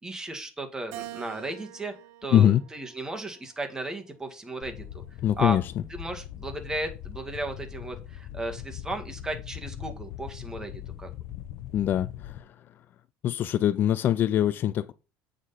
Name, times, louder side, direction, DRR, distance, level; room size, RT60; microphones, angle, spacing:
voice 1, 0.0-1.9 2.2-5.0 5.4-5.6 5.9-11.1, right 1 dB, 15° right, 1.9 m, -35 dB
Keyboard (musical), 0.9-3.4 4.0-5.2, right 15 dB, 80° right, 1.0 m, -46 dB
voice 2, 2.3-2.6 5.2-5.6 11.7-12.5 13.2-14.9, left 11 dB, 45° left, 0.4 m, -23 dB
sound 1, 4.6-12.4, left 12 dB, 65° left, 0.9 m, -41 dB
8.6 x 6.5 x 4.2 m
cardioid pair, 130°, 5 cm